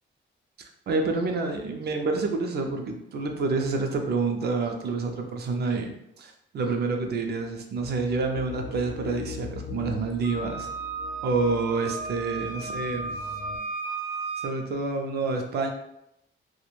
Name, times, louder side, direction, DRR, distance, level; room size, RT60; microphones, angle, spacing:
voice 1, 0.9-10.7 11.2-13.1 14.4-15.7, right 3 dB, 55° right, 3 dB, 0.4 m, -28 dB
sound 1, 7.7-13.6, left 5 dB, 80° left, 0.6 m, -41 dB
Wind instrument woodwind instrument, 10.2-14.6, right 4 dB, 70° right, 0.8 m, -34 dB
2.3 x 2.1 x 3.0 m, 0.80 s
wide cardioid pair, 175°, 21 cm